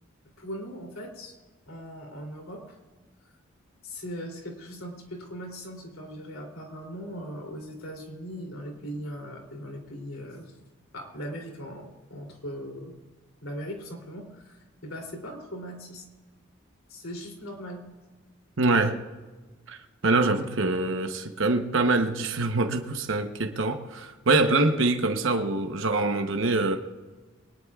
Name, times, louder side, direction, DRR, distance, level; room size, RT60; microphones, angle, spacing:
voice 1, 0.4-1.3 1.7-2.8 3.8-10.6 10.9-12.9 13.4-16.1 16.9-17.8, equal, 80° left, 2 dB, 3.0 m, -39 dB
voice 2, 18.6-19.0 19.7-19.8 20.0-26.8, right 3 dB, 65° right, 5 dB, 0.9 m, -24 dB
22.0 x 19.0 x 2.4 m, 1.3 s
head